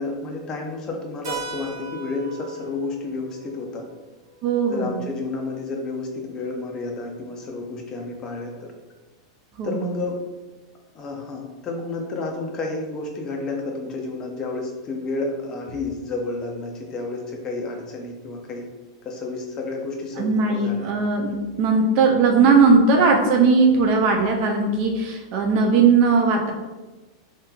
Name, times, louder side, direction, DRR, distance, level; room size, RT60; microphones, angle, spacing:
voice 1, 0.0-3.8 4.7-8.7 9.6-10.2 10.9-18.6 19.0-20.9 22.8-22.9 25.6-25.9, left 3 dB, 25° left, 1 dB, 0.4 m, -31 dB
Keyboard (musical), 1.2-5.7, right 4 dB, 85° right, 0.7 m, -39 dB
voice 2, 4.4-5.0 9.6-9.8 20.2-26.5, right 4 dB, 45° right, 2 dB, 0.4 m, -18 dB
2.9 x 2.2 x 2.3 m, 1.2 s
supercardioid pair, 140°, 2 cm